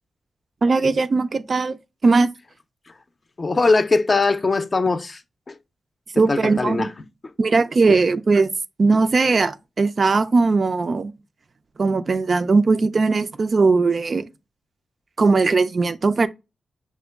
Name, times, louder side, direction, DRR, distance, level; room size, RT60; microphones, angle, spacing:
voice 1, 0.6-2.3 6.1-6.9 7.4-8.5 8.8-11.1 11.8-14.3 15.2-16.3, right 4 dB, 50° right, 0.3 m, -19 dB
voice 2, 3.4-5.2 5.5-5.6 6.3-6.9 7.9-8.0, left 3 dB, 40° left, 0.5 m, -20 dB
6.0 x 2.2 x 3.3 m
cardioid pair, 70°, 0 cm